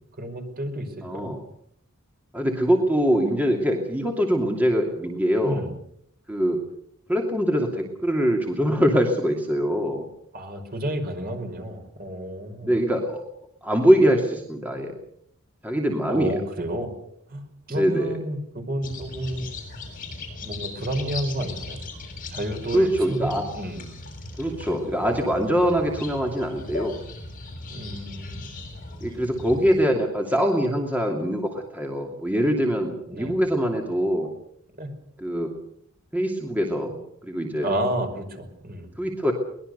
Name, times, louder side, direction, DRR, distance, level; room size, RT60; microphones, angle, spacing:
voice 1, 0.2-1.3 5.4-5.7 10.3-12.7 16.1-16.9 17.3-19.5 20.4-21.8 22.3-23.8 27.7-28.5 33.1-33.3 34.8-34.9 37.6-38.9, right 1 dB, 45° right, 5 dB, 5.5 m, -31 dB
voice 2, 1.0-1.4 2.3-5.6 6.3-6.6 7.1-10.0 12.6-13.2 13.6-14.9 15.6-16.4 17.7-18.2 22.7-23.5 24.4-26.9 29.0-34.3 35.2-35.5 36.1-37.7 39.0-39.3, equal, 10° right, 1 dB, 2.7 m, -23 dB
sound 1, 18.8-29.8, left 2 dB, 40° left, 7.2 m, -38 dB
23.5 x 20.5 x 6.8 m, 0.73 s
head